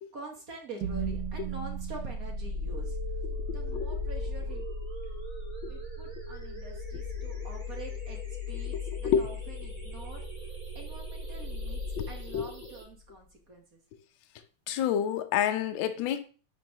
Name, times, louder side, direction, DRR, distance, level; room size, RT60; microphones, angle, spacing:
voice 1, 0.1-3.0 3.5-4.6 5.7-8.2 8.5-10.2 10.7-11.8 12.1-13.8, right 3 dB, 45° right, 1.5 m, -46 dB
sound 1, 0.8-12.9, left 1 dB, 60° right, 1.4 m, -36 dB
sound 2, 2.8-12.8, right 4 dB, 20° right, 2.3 m, -46 dB
voice 2, 3.5-4.0 5.6-5.7 8.7-9.3 12.0-12.5 14.7-16.2, left 9 dB, 70° left, 1.3 m, -29 dB
9.9 x 4.0 x 2.9 m
omnidirectional pair, 2.4 m